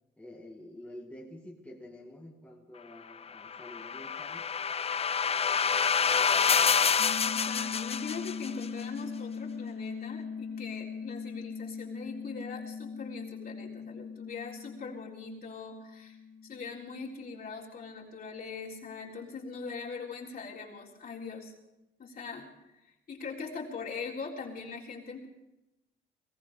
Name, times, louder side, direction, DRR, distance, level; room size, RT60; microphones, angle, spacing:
voice 1, 0.2-4.5, left 1 dB, 5° left, -2 dB, 2.1 m, -48 dB
sound 1, 3.4-8.7, left 6 dB, 30° left, 0.5 m, -27 dB
sound 2, 7.0-17.7, left 5 dB, 80° left, 2.0 m, -41 dB
voice 2, 7.2-21.5 22.0-22.5 22.8-25.3, left 4 dB, 50° left, -4 dB, 3.8 m, -41 dB
18.5 x 15.5 x 4.9 m, 0.96 s
cardioid pair, 90°, 20 cm